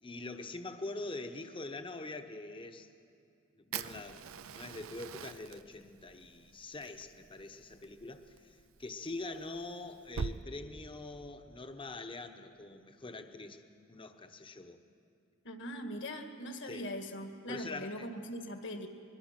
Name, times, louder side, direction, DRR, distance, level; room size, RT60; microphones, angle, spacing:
voice 1, 0.0-2.9 3.5-13.6 13.9-14.8 16.6-16.9 17.5-18.1, left 2 dB, 25° left, 7 dB, 1.0 m, -44 dB
Fire, 3.7-10.4, right 6 dB, 75° right, 0.6 m, -45 dB
voice 2, 15.4-18.9, equal, 60° left, 5 dB, 1.8 m, -41 dB
23.5 x 22.5 x 6.0 m, 2.5 s
head